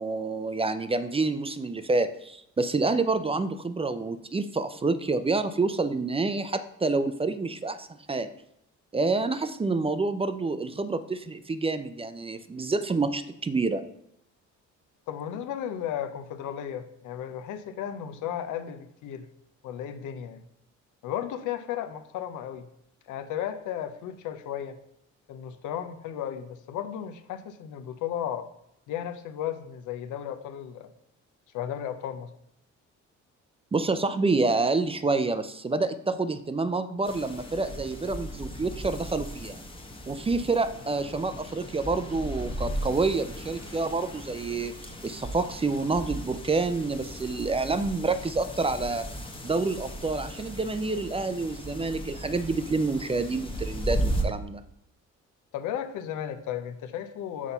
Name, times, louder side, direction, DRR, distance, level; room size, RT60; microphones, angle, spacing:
voice 1, 0.0-8.3 8.9-13.8 33.7-39.6 40.1-44.7 45.0-49.1 49.4-54.6, right 3 dB, 20° right, 11 dB, 0.4 m, -28 dB
voice 2, 15.1-19.3 19.6-20.4 21.0-22.7 23.1-24.8 25.3-28.5 28.9-30.9 31.5-32.3 55.5-57.5, left 10 dB, 85° left, 8 dB, 0.7 m, -34 dB
sound 1, 37.0-54.2, right 1 dB, 15° left, 1.0 m, -36 dB
6.2 x 4.1 x 5.5 m, 0.75 s
cardioid pair, 90°, 30 cm